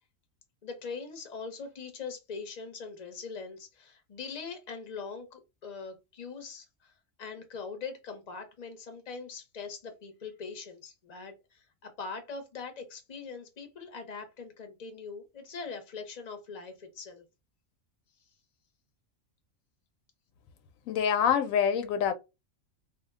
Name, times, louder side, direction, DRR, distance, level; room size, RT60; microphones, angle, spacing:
voice 1, 0.6-6.9 7.2-17.2, left 5 dB, 35° left, 0.8 m, -42 dB
voice 2, 20.9-22.1, left 8 dB, 85° left, 1.0 m, -26 dB
2.6 x 2.1 x 3.4 m
omnidirectional pair, 1.4 m